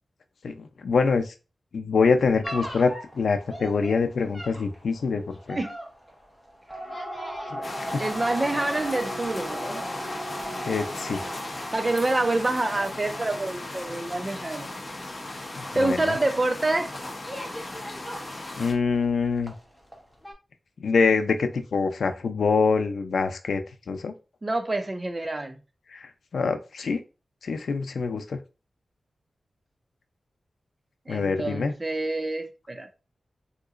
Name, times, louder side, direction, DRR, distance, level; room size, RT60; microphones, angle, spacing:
voice 1, 0.4-1.3 1.7-5.2 5.5-5.6 7.5-8.0 10.6-11.2 15.6-16.2 18.6-19.5 20.8-23.6 23.9-24.1 25.9-26.1 26.3-27.0 27.4-28.4 31.1-31.7, left 4 dB, 90° left, 0.4 m, -25 dB
sound 1, 2.4-19.1 19.4-20.0 20.2-20.3, equal, ahead, 0.9 m, -38 dB
sound 2, 7.6-18.7, left 2 dB, 35° left, 0.8 m, -37 dB
voice 2, 8.0-9.8 11.0-11.3 11.7-14.7 15.7-16.9 24.4-25.6 31.1-32.9, right 2 dB, 25° right, 0.5 m, -27 dB
3.7 x 2.8 x 2.4 m
wide cardioid pair, 140°, 0 cm